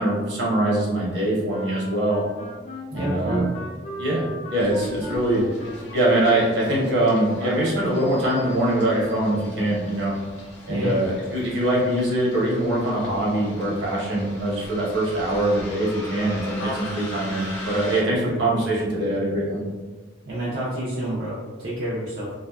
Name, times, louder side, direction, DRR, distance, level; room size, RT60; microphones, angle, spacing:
voice 1, 0.0-2.2 2.9-3.5 4.0-5.5 5.9-10.2 10.7-19.6, right 1 dB, 75° right, -5 dB, 0.9 m, -23 dB
sound 1, 1.5-7.1, right 1 dB, 35° left, 0.4 m, -38 dB
voice 2, 2.9-3.5 10.7-11.0 18.1-18.4 20.3-22.3, right 1 dB, 60° right, -6 dB, 0.4 m, -29 dB
Bus, 4.6-18.0, left 1 dB, 65° left, 0.7 m, -39 dB
2.5 x 2.3 x 2.2 m, 1.4 s
head